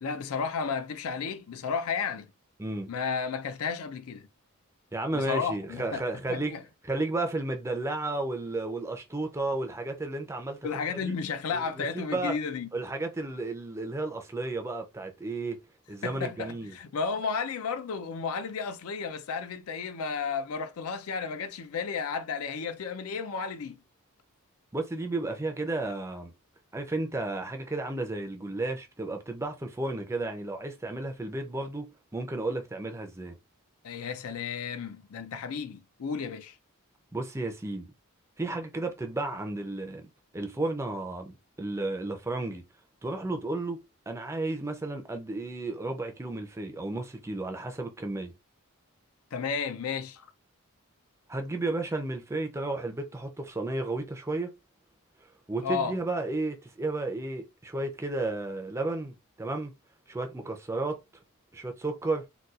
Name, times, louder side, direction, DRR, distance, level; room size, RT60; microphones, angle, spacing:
voice 1, 0.0-2.3 2.9-4.3 5.1-6.0 6.3-6.6 10.6-12.7 16.0-23.8 33.8-36.6 49.3-50.3 55.6-56.0, left 5 dB, 75° left, 0.4 m, -33 dB
voice 2, 2.6-2.9 4.9-6.5 6.8-10.6 10.9-11.1 11.5-12.3 12.7-15.6 15.9-16.7 24.7-26.3 26.7-33.4 37.1-37.9 38.4-42.6 43.0-48.3 51.3-54.5 55.5-59.7 60.1-61.0 61.5-62.3, right 2 dB, 15° right, 0.4 m, -33 dB
4.0 x 2.3 x 2.3 m
head